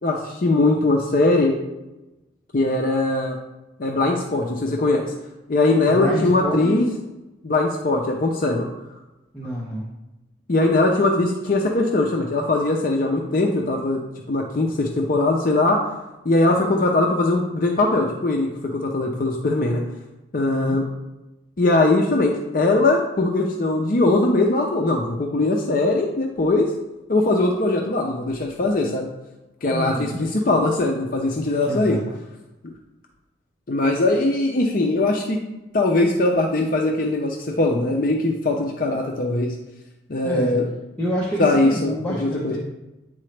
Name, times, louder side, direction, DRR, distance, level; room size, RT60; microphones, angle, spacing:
voice 1, 0.0-1.5 2.5-3.4 3.8-5.1 5.5-6.8 7.4-8.7 10.5-14.0 14.3-15.8 16.2-19.8 20.3-20.9 21.6-26.7 27.1-29.1 29.6-32.0 33.7-35.4 35.7-39.6 40.1-40.6 41.4-41.9 42.2-42.5, left 2 dB, 45° left, 1 dB, 0.5 m, -20 dB
voice 2, 5.8-6.7 9.3-9.9 20.5-20.8 29.7-30.2 31.7-32.0 40.2-40.5 41.0-42.6, equal, 10° left, -6 dB, 0.8 m, -27 dB
8.7 x 3.8 x 3.3 m, 1.0 s
head